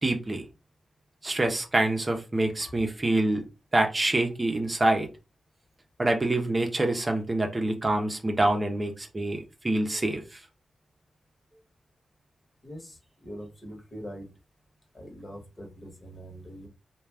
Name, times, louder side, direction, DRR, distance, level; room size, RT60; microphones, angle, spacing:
voice 1, 0.0-0.4 1.2-3.4 3.7-5.1 6.0-10.4, right 2 dB, 30° right, 0.6 m, -26 dB
voice 2, 13.2-14.3 15.0-16.7, equal, 35° left, 1.1 m, -42 dB
2.3 x 2.2 x 3.3 m
cardioid pair, 55°, 0 cm